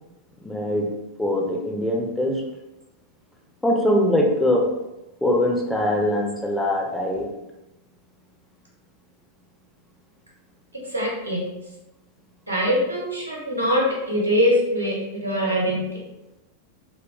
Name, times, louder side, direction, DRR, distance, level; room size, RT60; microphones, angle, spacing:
voice 1, 0.4-2.4 3.6-4.7 5.2-7.3, left 1 dB, 5° left, 0 dB, 0.4 m, -22 dB
voice 2, 10.9-11.4 12.5-15.8, equal, 85° right, -3 dB, 0.7 m, -23 dB
2.7 x 2.1 x 2.4 m, 0.96 s
figure-of-eight pair, 90°, 0 cm